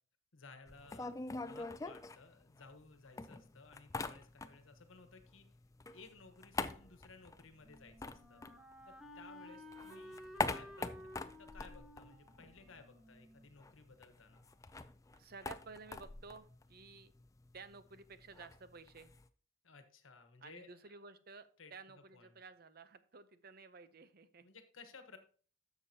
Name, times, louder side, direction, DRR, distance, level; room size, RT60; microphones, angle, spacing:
voice 1, 0.3-5.4 5.9-8.4 8.9-14.4 19.6-21.0 21.6-21.7 22.1-22.4 24.4-25.2, left 4 dB, 85° left, 7 dB, 1.2 m, -58 dB
sound 1, 0.7-2.9 3.2-4.8 5.1-9.2 9.6-12.9 13.1-13.2 13.5-19.3, left 3 dB, 15° left, 0.3 m, -44 dB
Wind instrument woodwind instrument, 7.2-14.1, left 1 dB, 5° right, 1.1 m, -55 dB
voice 2, 15.1-17.1 17.5-19.1 20.4-24.5, right 4 dB, 50° right, 13 dB, 0.6 m, -54 dB
11.0 x 7.0 x 2.8 m, 0.41 s
head